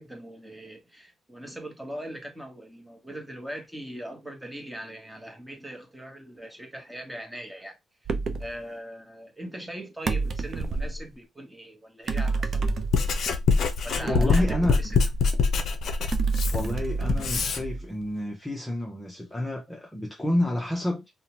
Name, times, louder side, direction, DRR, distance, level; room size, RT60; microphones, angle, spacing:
voice 1, 0.0-7.8 8.4-13.1 13.8-14.9, right 1 dB, 5° right, 1.0 m, -40 dB
sound 1, 8.1-8.5 10.1-11.0 12.1-13.3 14.1-15.4 16.1-18.0, right 4 dB, 50° right, 0.5 m, -29 dB
Writing, 12.6-17.6, left 5 dB, 65° left, 0.5 m, -24 dB
voice 2, 14.0-14.8 16.3-21.1, left 1 dB, 10° left, 0.6 m, -29 dB
2.7 x 2.1 x 2.9 m
cardioid pair, 90°, 0 cm